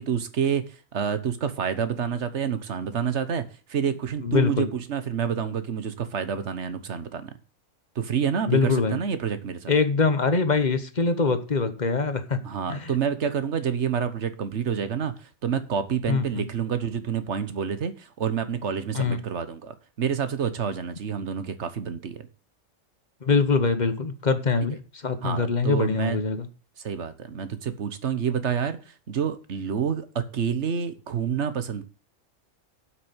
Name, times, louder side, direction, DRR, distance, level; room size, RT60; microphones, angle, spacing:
voice 1, 0.0-7.3 7.9-9.7 12.4-22.2 25.2-26.2 26.8-31.8, right 7 dB, 60° right, 11 dB, 1.4 m, -28 dB
voice 2, 4.2-4.7 8.5-9.0 9.7-12.4 12.7-12.9 16.1-16.5 18.9-19.2 23.2-26.5, left 4 dB, 35° left, 10 dB, 1.2 m, -23 dB
7.9 x 6.3 x 8.0 m, 0.36 s
omnidirectional pair, 1.3 m